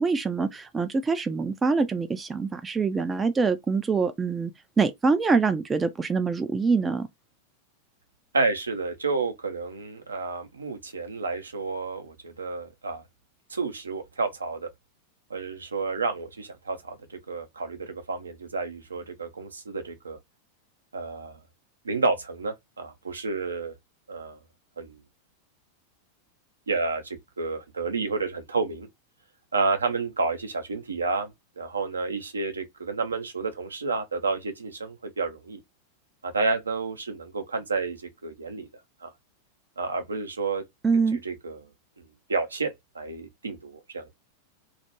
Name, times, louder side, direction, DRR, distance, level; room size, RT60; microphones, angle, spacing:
voice 1, 0.0-4.5 4.8-7.1 40.8-41.2, right 4 dB, 15° right, 0.3 m, -24 dB
voice 2, 8.3-13.0 13.5-14.7 15.3-20.2 20.9-21.4 21.8-23.7 24.1-24.4 24.8-25.0 26.7-28.9 29.5-35.6 36.2-38.7 39.0-39.1 39.8-40.6 40.9-41.6 42.3-44.1, right 4 dB, 75° right, 0.5 m, -30 dB
2.3 x 2.1 x 2.9 m
figure-of-eight pair, 90°, 0 cm